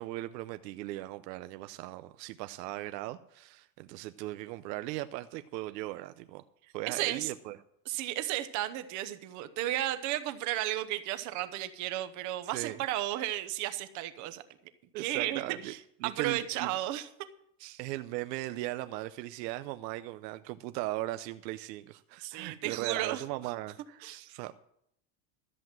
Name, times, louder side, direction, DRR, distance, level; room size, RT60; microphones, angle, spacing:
voice 1, 0.0-6.4 6.7-7.6 12.4-12.8 14.9-15.7 16.0-16.7 17.8-24.5, right 17 dB, 80° right, 11 dB, 0.7 m, -38 dB
voice 2, 6.9-7.3 7.9-14.4 15.0-15.8 16.0-17.1 17.6-17.8 22.2-23.2 24.0-24.3, right 14 dB, 35° right, 11 dB, 0.9 m, -34 dB
13.5 x 7.9 x 7.5 m, 0.74 s
supercardioid pair, 170°, 49 cm